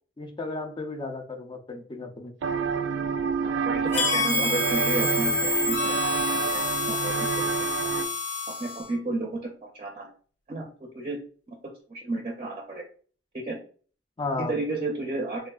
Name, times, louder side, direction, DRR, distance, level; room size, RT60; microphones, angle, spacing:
voice 1, 0.2-2.3 14.2-14.5, left 3 dB, 25° left, 5 dB, 0.4 m, -34 dB
sound 1, 2.4-8.1, right 6 dB, 85° right, 0.3 m, -28 dB
voice 2, 3.6-6.0 6.3-8.0 8.6-10.1 10.5-11.2 11.5-11.6 11.9-12.8 13.3-13.6 14.4-15.4, right 2 dB, 30° right, 1 dB, 0.5 m, -32 dB
Harmonica, 3.9-9.0, left 3 dB, 90° left, 1.3 m, -28 dB
sound 2, 4.0-6.0, left 5 dB, 65° left, 0.7 m, -34 dB
3.4 x 2.4 x 2.2 m, 0.42 s
head